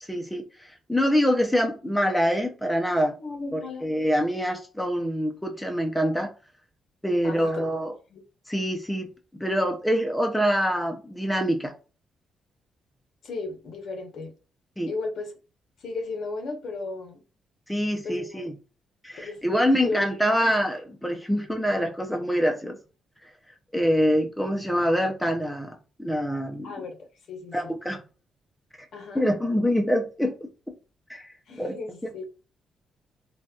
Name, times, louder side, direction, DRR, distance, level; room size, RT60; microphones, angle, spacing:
voice 1, 0.0-3.2 3.5-6.3 7.0-7.9 8.5-9.1 9.4-11.7 14.8-14.9 17.7-18.5 19.0-22.8 23.7-25.7 26.0-26.7 27.5-28.0 29.1-30.8 31.1-31.3 31.6-31.8, equal, 5° left, 0.4 m, -25 dB
voice 2, 3.2-3.9 7.2-7.8 8.1-8.2 13.2-14.3 14.9-15.3 15.8-17.2 18.0-18.5 19.2-19.4 19.8-20.1 20.4-20.5 26.6-27.0 27.3-27.8 28.9-29.3 31.5-32.2, left 3 dB, 60° left, 0.9 m, -35 dB
4.0 x 2.2 x 2.3 m
cardioid pair, 160°, 0 cm